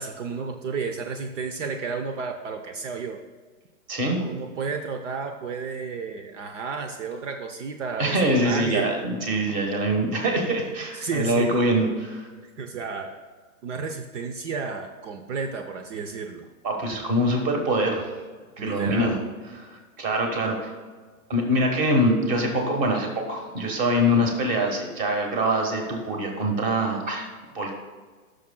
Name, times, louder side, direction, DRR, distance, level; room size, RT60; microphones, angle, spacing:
voice 1, 0.0-3.2 4.2-9.0 10.9-11.5 12.6-13.2 13.6-16.5 18.6-19.2 20.4-20.5, right 5 dB, 55° right, 5 dB, 0.8 m, -32 dB
voice 2, 3.9-4.2 8.0-12.3 16.6-18.1 18.6-19.2 19.5-19.6 20.0-20.6 21.3-27.3 27.5-27.7, equal, 20° right, 2 dB, 1.3 m, -24 dB
16.5 x 6.5 x 2.2 m, 1.5 s
hypercardioid pair, 160°, 44 cm